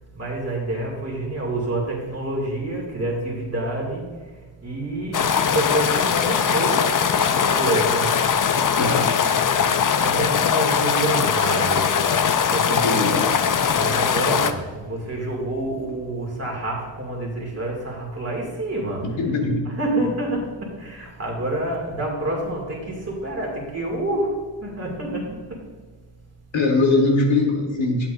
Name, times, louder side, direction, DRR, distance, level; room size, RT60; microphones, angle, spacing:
voice 1, 0.1-5.2 5.5-6.8 7.3-8.1 10.0-11.9 12.5-13.2 13.7-19.1 19.6-25.6, right 2 dB, 30° right, -3 dB, 2.4 m, -28 dB
sound 1, 5.1-14.5, left 7 dB, 45° left, 0.4 m, -20 dB
voice 2, 8.7-9.1 12.8-13.4 19.0-19.7 26.5-28.1, left 2 dB, 65° left, 1 dB, 1.6 m, -21 dB
11.0 x 8.9 x 2.6 m, 1.4 s
wide cardioid pair, 165°, 49 cm